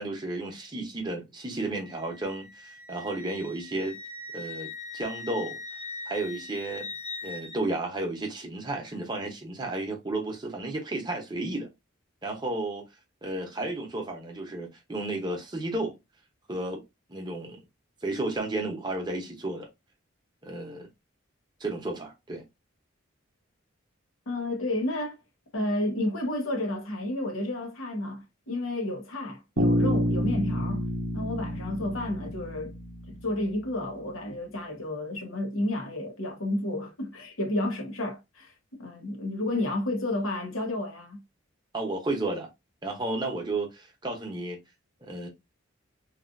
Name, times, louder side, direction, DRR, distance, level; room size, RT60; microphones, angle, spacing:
voice 1, 0.0-4.0 4.3-5.6 6.1-6.9 7.2-11.7 12.2-12.8 13.2-16.0 16.5-16.8 17.1-17.6 18.0-19.7 20.4-20.9 21.6-22.4 41.7-42.5 42.8-44.6 45.0-45.3, right 2 dB, 20° right, 0.8 m, -32 dB
Wind instrument woodwind instrument, 1.8-7.6, left 3 dB, 30° left, 0.4 m, -41 dB
voice 2, 24.3-25.2 25.5-30.8 31.1-32.7 33.1-41.2, left 1 dB, 80° left, 1.0 m, -31 dB
Bass guitar, 29.6-33.5, equal, 55° right, 0.6 m, -28 dB
3.2 x 2.4 x 2.4 m
head